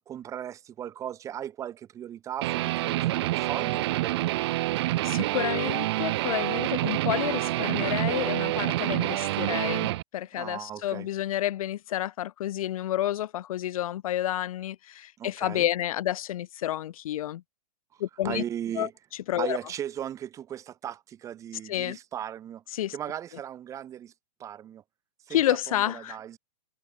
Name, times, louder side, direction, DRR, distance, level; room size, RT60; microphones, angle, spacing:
voice 1, 0.1-4.6 10.3-11.1 15.2-15.7 18.2-18.9 19.4-22.6 22.9-24.1 24.4-24.8 25.3-26.4, right 10 dB, 15° right, 1.1 m, -37 dB
Guitar, 2.4-10.0, right 17 dB, 40° right, 0.6 m, -27 dB
voice 2, 5.0-17.4 18.0-18.4 18.8-18.9 19.3-19.6 21.7-22.0 22.7-22.9 25.3-26.2, left 13 dB, 55° left, 1.0 m, -30 dB
hypercardioid pair, 155°, 21 cm